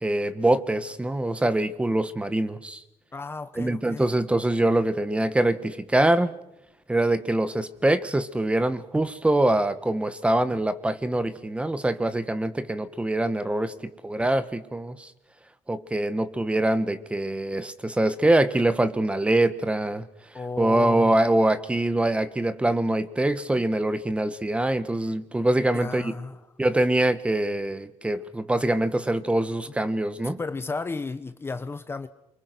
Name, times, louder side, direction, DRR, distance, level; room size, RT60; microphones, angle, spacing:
voice 1, 0.0-2.8 3.6-6.3 6.9-13.7 14.0-15.1 15.7-20.0 20.6-26.1 26.6-30.4, right 1 dB, 10° right, 13 dB, 1.4 m, -24 dB
voice 2, 3.1-4.1 20.3-21.2 25.7-26.4 30.2-32.1, left 4 dB, 20° left, 11 dB, 1.1 m, -33 dB
28.0 x 25.0 x 6.2 m, 0.89 s
cardioid pair, 140°, 12 cm